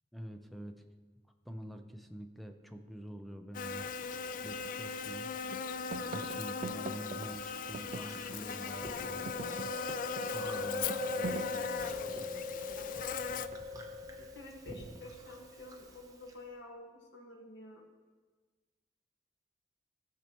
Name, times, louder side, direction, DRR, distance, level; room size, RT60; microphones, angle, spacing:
voice 1, 0.1-0.8 1.4-3.9 4.4-5.3 5.6-9.7 10.3-12.5, equal, ahead, 5 dB, 0.6 m, -47 dB
Buzz, 3.5-13.5, left 5 dB, 50° left, 0.3 m, -39 dB
sound 1, 4.1-4.2 4.6-5.2 5.5-8.6 8.9-12.5 13.5-14.0, right 4 dB, 45° right, 0.3 m, -45 dB
Chewing mastication, 7.4-16.3, left 2 dB, 20° right, 0.9 m, -42 dB
voice 2, 14.0-17.8, left 1 dB, 85° left, -1 dB, 1.7 m, -50 dB
15.5 x 6.6 x 3.0 m, 1.4 s
head